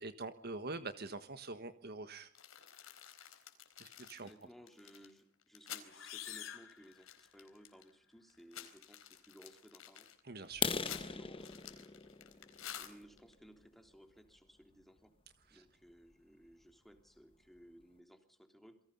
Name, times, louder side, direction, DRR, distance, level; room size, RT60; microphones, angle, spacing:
voice 1, 0.0-2.3 3.8-4.3 10.3-10.8, right 3 dB, 50° right, 10 dB, 1.4 m, -44 dB
sound 1, 2.3-5.9 6.3-6.4 6.6-7.9 8.3-13.3, left 10 dB, 85° left, 4.2 m, -51 dB
voice 2, 4.2-10.1 10.8-11.9 12.7-15.1 15.5-18.8, equal, ahead, 5 dB, 3.5 m, -60 dB
sound 2, 5.8-7.7, left 10 dB, 70° left, 3.2 m, -49 dB
Balloon burst under brick arch with strong focus, 10.5-14.3 14.8-15.0 15.4-15.5 16.0-16.1 16.4-16.5 17.0-17.1 17.3-17.8, left 5 dB, 25° left, 1.2 m, -41 dB
28.5 x 23.5 x 5.5 m, 0.63 s
head